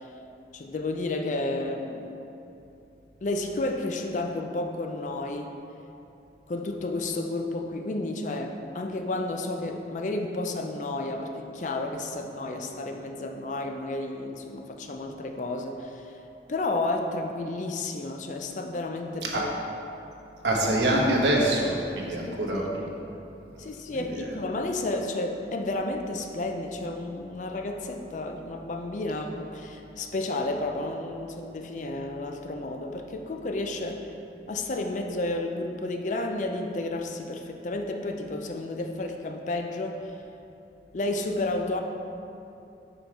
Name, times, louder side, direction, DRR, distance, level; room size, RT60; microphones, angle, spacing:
voice 1, 0.5-2.1 3.2-5.6 6.5-16.2 16.5-19.5 22.2-22.9 23.6-34.1 34.5-40.1 40.9-41.8, left 2 dB, 45° left, 4 dB, 0.4 m, -31 dB
voice 2, 20.4-22.6 23.9-24.3, right 1 dB, 80° right, -2 dB, 1.0 m, -25 dB
5.3 x 4.5 x 4.9 m, 2.8 s
head